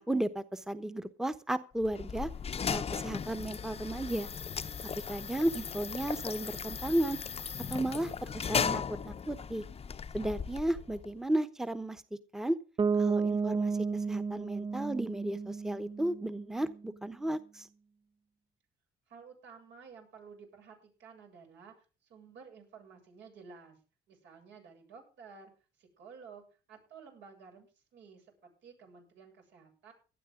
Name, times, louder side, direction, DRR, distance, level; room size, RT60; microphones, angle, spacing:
voice 1, 0.0-2.3 2.7-4.3 5.1-7.2 7.7-9.6 10.1-12.0 12.3-12.6 13.0-13.8 14.1-17.7, right 1 dB, 5° right, 11 dB, 1.0 m, -34 dB
sound 1, 1.8-11.1, left 6 dB, 35° left, 0.8 m, -37 dB
Bass guitar, 12.8-16.6, right 5 dB, 30° right, 0.7 m, -32 dB
voice 2, 19.1-23.8 24.1-25.5 25.8-29.9, right 5 dB, 80° right, 3 dB, 7.8 m, -53 dB
17.5 x 12.0 x 3.8 m, 0.36 s
cardioid pair, 95°, 18 cm